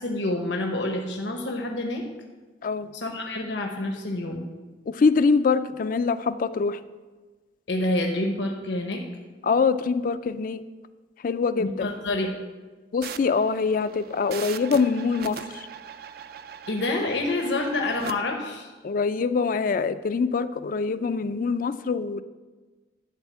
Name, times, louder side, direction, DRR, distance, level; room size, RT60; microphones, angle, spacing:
voice 1, 0.0-2.0 2.9-4.5 7.7-9.0 11.6-12.3 16.7-18.7, left 2 dB, 80° left, 2 dB, 1.0 m, -27 dB
voice 2, 4.9-6.8 9.4-10.6 11.2-11.9 12.9-15.6 18.8-22.2, left 5 dB, 50° left, 12 dB, 0.4 m, -24 dB
sound 1, 13.0-18.1, right 7 dB, 55° right, 0.4 m, -40 dB
11.5 x 4.2 x 7.3 m, 1.3 s
head